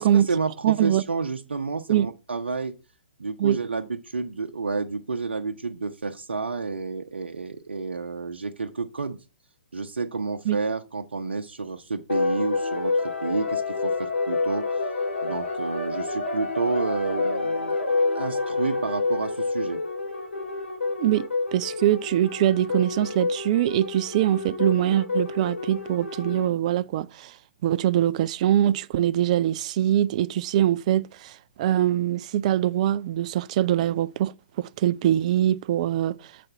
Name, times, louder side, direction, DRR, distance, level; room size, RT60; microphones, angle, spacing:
voice 1, 0.0-2.7 3.2-9.2 9.7-14.8 15.2-17.7 18.1-19.8, right 4 dB, 70° right, 0.7 m, -30 dB
voice 2, 0.6-1.0 1.9-2.1 3.4-3.6 10.5-10.6 21.0-27.4 27.6-36.3, right 11 dB, 35° right, 0.4 m, -23 dB
sound 1, 12.1-26.5, left 3 dB, 75° left, 2.7 m, -28 dB
7.7 x 4.2 x 4.7 m
figure-of-eight pair, 125°, 6 cm